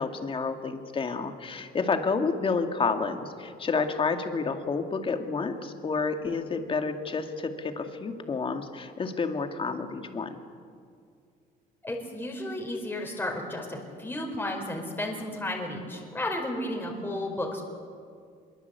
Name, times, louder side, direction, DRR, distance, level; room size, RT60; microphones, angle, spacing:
voice 1, 0.0-10.4, left 4 dB, 30° left, 6 dB, 2.4 m, -30 dB
voice 2, 11.8-17.6, left 1 dB, 10° left, 0 dB, 4.8 m, -33 dB
24.5 x 23.0 x 8.3 m, 2.2 s
cardioid pair, 110°, 17 cm